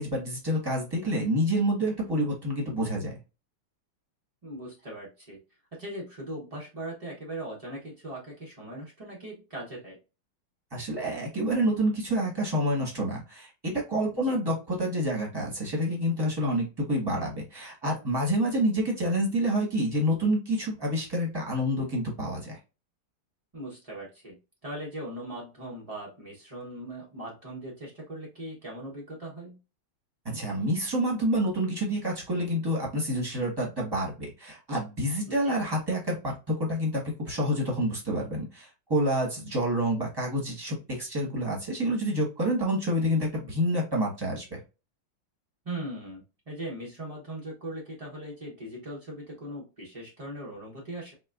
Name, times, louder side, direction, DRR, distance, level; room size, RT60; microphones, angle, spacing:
voice 1, 0.0-3.2 10.7-22.6 30.2-44.6, equal, 15° right, -2 dB, 0.8 m, -28 dB
voice 2, 4.4-5.4 5.7-10.0 14.2-14.4 23.5-24.4 24.6-29.6 35.3-35.5 45.6-51.1, right 1 dB, 60° right, -4 dB, 0.3 m, -39 dB
4.8 x 2.2 x 2.4 m, 0.29 s
omnidirectional pair, 2.2 m